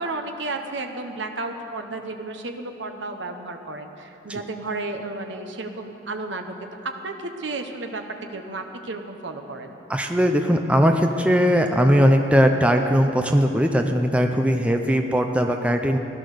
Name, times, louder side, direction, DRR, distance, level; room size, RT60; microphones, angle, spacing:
voice 1, 0.0-6.5 6.8-9.8, right 2 dB, 75° right, 5 dB, 1.1 m, -32 dB
voice 2, 9.9-16.0, equal, 5° right, 4 dB, 0.6 m, -19 dB
16.5 x 11.5 x 6.6 m, 3.0 s
head